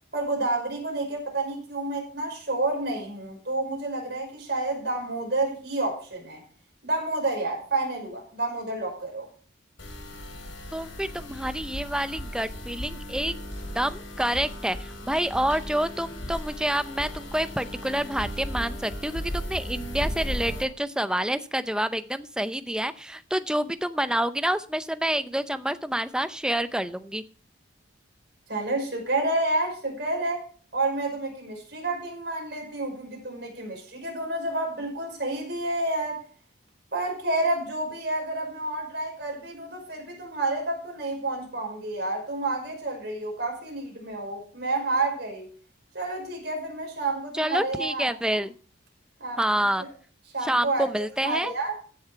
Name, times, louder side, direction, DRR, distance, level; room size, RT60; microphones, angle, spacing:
voice 1, 0.1-6.4 6.8-9.3 28.5-30.4 30.7-36.2 36.9-45.5 45.9-48.4 49.2-49.9 50.3-50.9 51.2-51.7, right 2 dB, 55° right, 1 dB, 5.4 m, -29 dB
sound 1, 9.8-20.6, equal, 85° left, 4.2 m, -36 dB
voice 2, 10.7-13.3 13.7-27.2 47.3-48.5 49.4-49.8 50.4-51.5, right 1 dB, 5° right, 12 dB, 0.5 m, -28 dB
15.0 x 7.0 x 4.6 m, 0.42 s
head